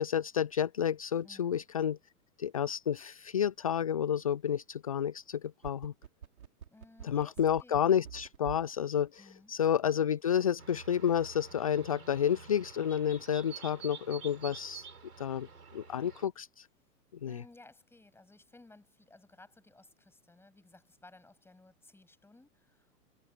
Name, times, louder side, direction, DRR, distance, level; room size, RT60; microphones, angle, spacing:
voice 1, 0.0-2.0 2.4-5.9 7.0-14.9 15.2-15.5 15.7-16.7 17.2-17.4, left 9 dB, 25° left, 0.3 m, -30 dB
voice 2, 1.2-1.6 6.7-8.0 9.2-9.5 17.3-23.0, left 2 dB, 5° left, 7.5 m, -58 dB
sound 1, 5.3-8.7 9.1-9.2, right 9 dB, 65° right, 4.2 m, -46 dB
sound 2, 10.6-16.3, right 6 dB, 80° right, 6.8 m, -49 dB
figure-of-eight pair, 110°, 46 cm